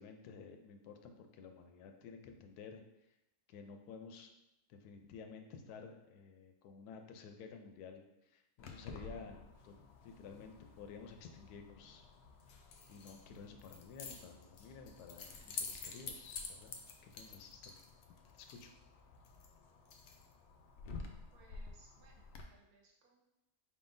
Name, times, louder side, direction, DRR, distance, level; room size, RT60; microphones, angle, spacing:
voice 1, 0.0-2.8 3.5-4.3 4.7-9.7 10.0-12.1 12.9-16.8 17.1-17.7 18.3-18.7, left 5 dB, 85° left, 5 dB, 1.1 m, -53 dB
Keys jangling, 8.6-22.4, left 4 dB, 70° left, 0.6 m, -50 dB
voice 2, 21.3-22.2 22.5-23.2, right 4 dB, 80° right, -1 dB, 1.2 m, -65 dB
4.6 x 3.7 x 2.6 m, 0.89 s
omnidirectional pair, 1.6 m